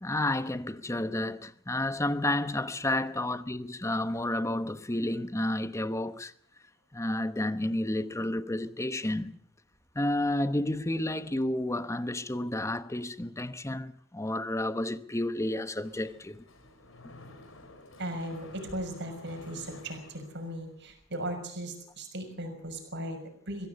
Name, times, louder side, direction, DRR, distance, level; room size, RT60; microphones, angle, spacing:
voice 1, 0.0-6.3 6.9-9.3 9.9-16.4, left 1 dB, 15° left, 1.0 m, -31 dB
Mechanisms, 15.7-20.9, left 2 dB, 85° left, 4.3 m, -52 dB
voice 2, 18.0-23.7, right 1 dB, 60° right, 6.2 m, -37 dB
23.5 x 16.5 x 6.9 m
head